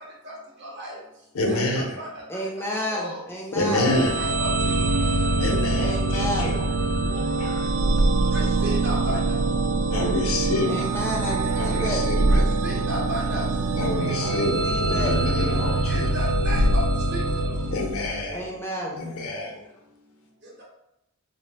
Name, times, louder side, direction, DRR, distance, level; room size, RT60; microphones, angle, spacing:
voice 1, 0.6-1.0 1.5-2.2 2.6-3.2 3.7-4.8 8.3-9.4 12.2-13.5 15.9-16.9 17.1-17.4, right 1 dB, 50° right, -3 dB, 0.8 m, -34 dB
voice 2, 1.3-2.0 3.5-4.3 5.4-6.6 7.4-7.7 8.0-8.3 9.9-10.9 11.5-12.4 13.7-16.1 17.7-18.5 19.0-19.6, left 2 dB, 75° left, 1 dB, 0.6 m, -28 dB
voice 3, 2.3-3.9 5.8-6.6 10.7-12.0 14.2-15.7 18.3-19.0, left 1 dB, 10° left, -1 dB, 0.4 m, -31 dB
sound 1, 3.7-18.4, right 2 dB, 80° right, 0.4 m, -24 dB
2.7 x 2.0 x 3.2 m, 0.85 s
head